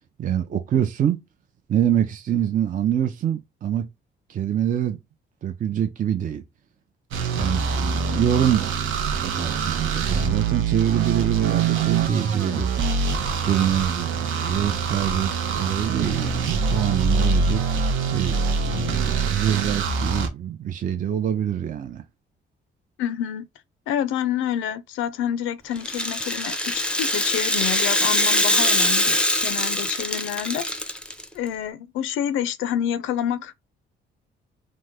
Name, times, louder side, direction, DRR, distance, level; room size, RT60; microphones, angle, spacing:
voice 1, 0.2-1.2 1.7-3.8 4.3-5.0 5.4-6.4 7.3-8.7 9.2-12.7 13.4-17.6 18.1-22.0, right 10 dB, 45° right, 0.5 m, -25 dB
sound 1, 7.1-20.3, right 5 dB, 80° right, 0.7 m, -24 dB
voice 2, 23.0-23.5 23.9-30.6 31.3-33.5, left 10 dB, 90° left, 0.4 m, -28 dB
Rattle (instrument), 25.8-31.2, left 1 dB, 5° left, 0.5 m, -23 dB
3.0 x 2.1 x 3.4 m
cardioid pair, 90°, 20 cm